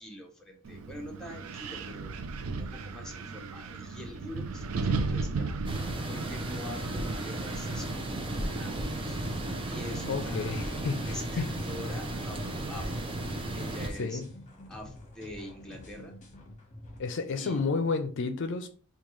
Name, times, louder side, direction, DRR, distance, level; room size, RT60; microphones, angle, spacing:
voice 1, 0.0-2.2 2.5-5.6 6.1-9.2 9.6-10.7 11.1-13.1 13.5-14.2 14.7-16.2 17.4-17.7, left 1 dB, 5° left, 0.8 m, -45 dB
Wind, 0.7-10.6, right 4 dB, 75° right, 0.4 m, -36 dB
sound 1, 5.6-13.9, right 1 dB, 25° right, 0.5 m, -34 dB
sound 2, 6.7-17.0, left 1 dB, 35° left, 1.0 m, -48 dB
voice 2, 10.0-11.5 14.0-14.2 17.0-18.7, left 4 dB, 60° left, 0.4 m, -31 dB
5.1 x 2.3 x 3.1 m
head